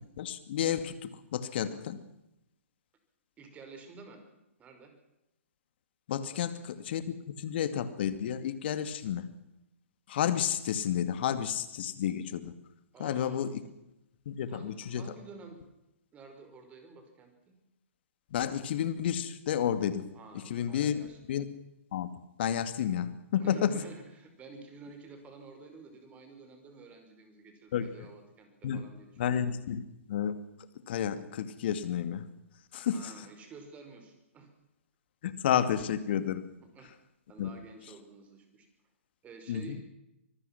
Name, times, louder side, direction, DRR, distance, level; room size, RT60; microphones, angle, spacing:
voice 1, 0.2-2.0 6.1-6.5 6.9-9.3 10.1-12.5 13.0-13.5 14.3-15.0 18.3-20.1 20.5-21.0 21.3-21.5 21.9-22.1 22.4-23.7 27.7-27.9 28.6-28.8 29.2-30.3 30.9-32.2 32.7-33.1 35.2-36.4 37.4-37.5 39.5-39.8, left 9 dB, 50° left, 12 dB, 2.3 m, -31 dB
voice 2, 3.4-4.2 4.6-4.9 6.3-6.7 12.9-13.5 14.5-15.6 16.1-17.6 20.1-21.2 23.4-29.5 32.7-34.5 36.7-37.0 37.3-38.7 39.2-39.8, right 4 dB, 20° right, 6 dB, 5.5 m, -51 dB
25.5 x 20.0 x 6.1 m, 0.91 s
figure-of-eight pair, 125°, 7 cm